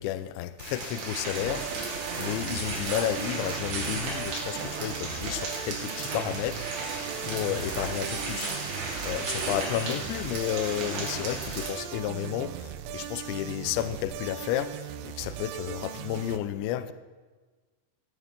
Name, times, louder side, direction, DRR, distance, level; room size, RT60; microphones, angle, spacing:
voice 1, 0.0-6.9 7.2-8.6 9.0-16.9, left 12 dB, 80° left, 13 dB, 2.8 m, -32 dB
sound 1, 0.6-11.7, right 3 dB, 70° right, 5.0 m, -34 dB
sound 2, 1.4-16.4, right 11 dB, 85° right, 3.2 m, -39 dB
17.5 x 6.9 x 7.7 m, 1.3 s
omnidirectional pair, 5.6 m